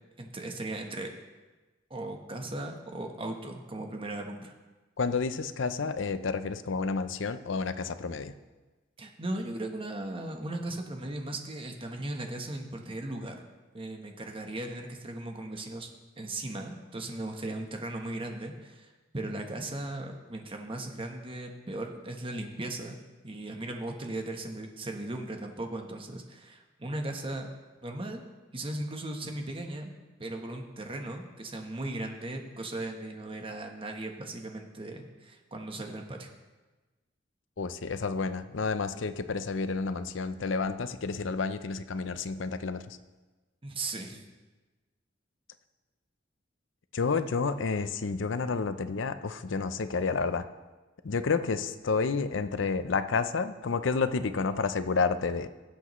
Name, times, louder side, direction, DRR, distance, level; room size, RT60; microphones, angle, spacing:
voice 1, 0.2-1.1 1.9-4.5 9.0-13.4 13.7-15.9 16.2-23.0 23.2-27.5 27.8-28.2 28.5-29.9 30.2-36.3 43.6-44.2, right 2 dB, 30° right, 3 dB, 1.1 m, -37 dB
voice 2, 5.0-8.3 37.6-43.0 46.9-50.4 51.0-55.5, left 4 dB, 75° left, 11 dB, 0.6 m, -30 dB
18.0 x 8.0 x 3.1 m, 1.2 s
head